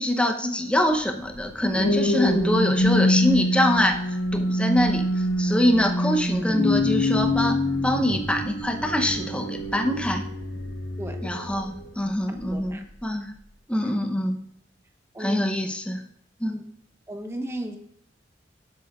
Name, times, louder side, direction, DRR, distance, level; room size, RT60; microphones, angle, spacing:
voice 1, 0.0-7.6 7.8-10.2 11.2-13.3 13.7-14.5 15.2-16.0 16.4-16.6, left 1 dB, 5° left, 4 dB, 0.7 m, -24 dB
sound 1, 1.3-11.9 12.4-12.7, left 1 dB, 80° left, 1.3 m, -25 dB
voice 2, 12.5-12.8 13.8-13.9 15.1-15.5 16.5-16.6 17.1-17.8, right 1 dB, 15° right, 4 dB, 1.0 m, -35 dB
17.5 x 8.0 x 2.4 m, 0.70 s
head